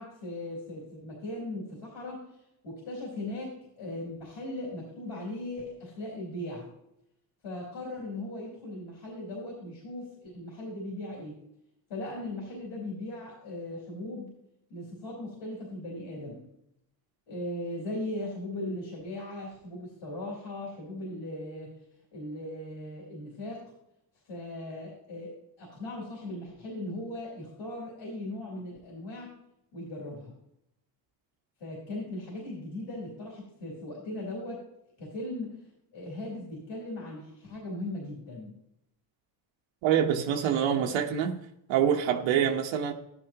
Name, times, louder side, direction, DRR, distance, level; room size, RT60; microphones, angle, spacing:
voice 1, 0.0-2.2 2.6-6.7 7.4-11.4 11.9-14.3 14.7-16.5 17.3-21.7 22.1-23.7 24.2-29.3 29.7-30.3 31.6-34.6 35.0-35.6 35.9-38.5, left 1 dB, 70° left, 4.1 m, -38 dB
voice 2, 39.8-41.3 41.7-42.9, right 9 dB, 85° right, 1.2 m, -25 dB
12.5 x 10.5 x 2.9 m
cardioid pair, 90°, 45 cm